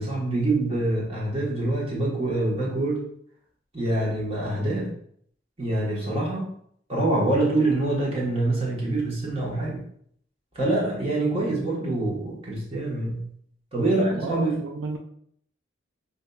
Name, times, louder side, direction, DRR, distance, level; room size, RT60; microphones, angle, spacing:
voice 1, 0.0-3.1 3.7-4.9 5.6-6.5 6.9-9.8 10.5-13.2 13.7-14.6, right 2 dB, 30° right, -4 dB, 1.1 m, -25 dB
voice 2, 13.7-15.0, right 3 dB, 80° right, 2 dB, 0.4 m, -34 dB
5.1 x 2.6 x 2.2 m, 0.66 s
head